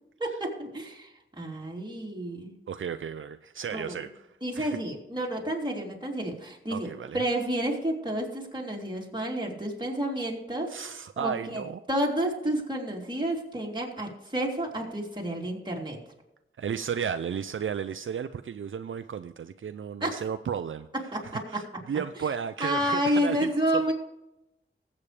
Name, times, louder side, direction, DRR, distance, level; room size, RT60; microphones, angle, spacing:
voice 1, 0.2-2.5 3.7-3.9 4.4-6.9 7.1-10.9 11.2-11.6 11.9-16.0 20.0-20.2 21.1-21.6 22.6-23.9, right 1 dB, 20° right, -2 dB, 3.2 m, -30 dB
voice 2, 2.7-4.8 6.7-7.2 10.7-11.8 16.6-20.9 21.2-23.8, right 7 dB, 70° right, 10 dB, 0.5 m, -34 dB
20.0 x 8.7 x 3.3 m, 0.91 s
wide cardioid pair, 90°, 21 cm